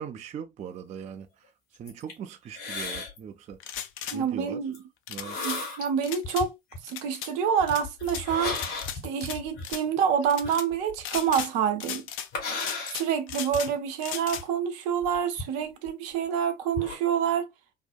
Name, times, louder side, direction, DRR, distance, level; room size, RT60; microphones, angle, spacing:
voice 1, 0.0-1.5 1.8-3.6 4.1-4.6 5.1-5.4, right 8 dB, 25° right, 0.3 m, -40 dB
sound 1, 1.7-2.2 2.5-3.2 3.5-3.8 4.7-4.8 5.1-5.9 6.2-6.8 7.6-11.4 12.3-13.7 14.4-14.5 15.0-16.2 16.6-17.0, left 3 dB, 60° left, 1.3 m, -35 dB
sound 2, 3.6-4.2 5.1-5.6 6.0-6.4 6.9-7.3 7.7-8.2 8.5-9.4 9.6-9.8 10.3-10.6 11.0-11.5 11.8-12.3 12.6-13.7 14.0-14.4, left 10 dB, 40° left, 0.4 m, -36 dB
voice 2, 4.1-4.8 5.4-6.5 6.8-8.7 9.0-12.1 12.9-17.5, right 7 dB, 65° right, 0.6 m, -27 dB
2.7 x 2.1 x 2.3 m
figure-of-eight pair, 55°, 30 cm